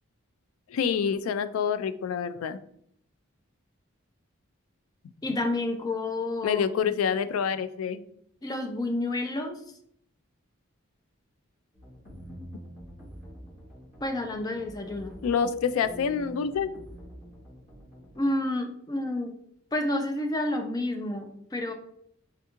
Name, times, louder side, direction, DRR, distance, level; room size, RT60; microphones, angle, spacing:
voice 1, 0.7-2.6 6.4-8.0 15.2-16.7, left 7 dB, 90° left, 14 dB, 0.3 m, -27 dB
voice 2, 5.2-6.9 8.4-9.6 14.0-15.2 18.2-19.4 19.7-21.7, left 1 dB, 20° left, 5 dB, 0.4 m, -30 dB
sound 1, 11.7-18.2, equal, 40° left, 1.3 m, -46 dB
3.5 x 2.9 x 3.5 m, 0.68 s
head